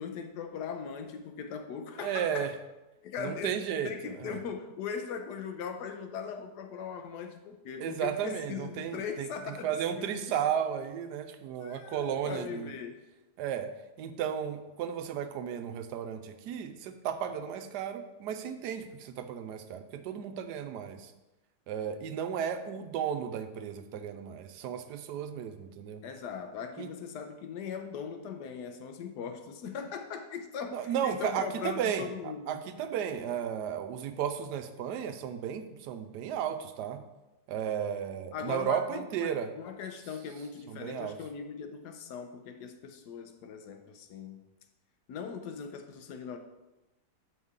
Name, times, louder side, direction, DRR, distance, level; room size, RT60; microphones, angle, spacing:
voice 1, 0.0-2.5 3.0-3.5 3.8-10.3 11.6-13.0 26.0-32.6 38.3-44.4 45.1-46.4, left 6 dB, 80° left, 1.3 m, -39 dB
voice 2, 2.0-2.5 3.2-3.9 4.2-4.4 7.8-12.7 13.4-13.7 14.0-21.1 21.7-26.0 26.8-26.9 30.7-37.0 37.5-39.5 40.7-41.2, right 8 dB, 85° right, 1.2 m, -34 dB
7.8 x 5.5 x 3.6 m
omnidirectional pair, 1.7 m